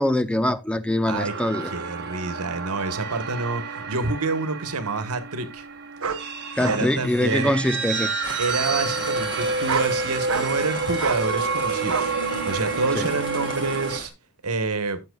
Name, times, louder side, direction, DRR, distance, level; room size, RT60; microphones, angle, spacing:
voice 1, 0.0-1.7 6.6-8.1 12.9-13.1, left 1 dB, 5° left, 0.4 m, -23 dB
sound 1, 1.1-14.0, right 4 dB, 50° right, 1.6 m, -29 dB
voice 2, 1.6-5.6 6.6-7.5 8.4-12.1 12.5-14.1 14.4-15.0, right 3 dB, 85° right, 1.3 m, -28 dB
sound 2, 3.9-4.0 6.0-6.2 6.6-6.9 7.2-7.8 8.5-8.7 9.5-9.9 10.3-10.6 11.0-11.2 11.9-12.1 12.6-12.7, right 5 dB, 65° right, 1.0 m, -28 dB
sound 3, 8.2-14.1, left 2 dB, 20° left, 1.9 m, -38 dB
13.5 x 7.2 x 2.3 m
head